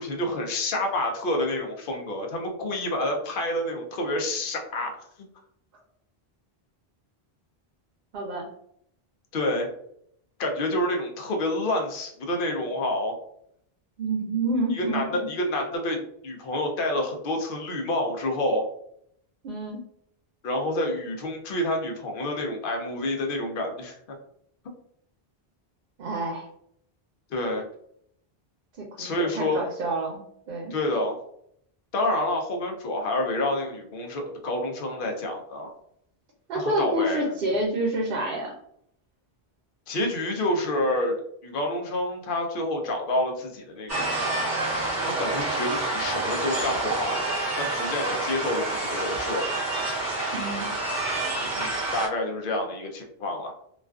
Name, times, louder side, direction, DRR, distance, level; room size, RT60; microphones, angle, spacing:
voice 1, 0.0-5.1 9.3-9.7 10.4-13.2 14.7-18.7 20.4-24.0 27.3-27.6 29.0-29.7 30.7-31.2 31.9-35.7 36.5-37.3 39.9-44.4 45.1-47.2 47.6-49.5 51.4-53.5, left 1 dB, 65° left, 3 dB, 0.7 m, -28 dB
voice 2, 8.1-8.5 14.0-15.3 19.4-19.8 26.0-26.5 29.0-30.2 30.5-30.7 36.5-38.5 50.3-50.7, right 1 dB, 65° right, -1 dB, 0.7 m, -28 dB
sound 1, 43.9-52.1, right 2 dB, 20° right, 0.6 m, -28 dB
2.4 x 2.3 x 2.3 m, 0.70 s
omnidirectional pair, 1.0 m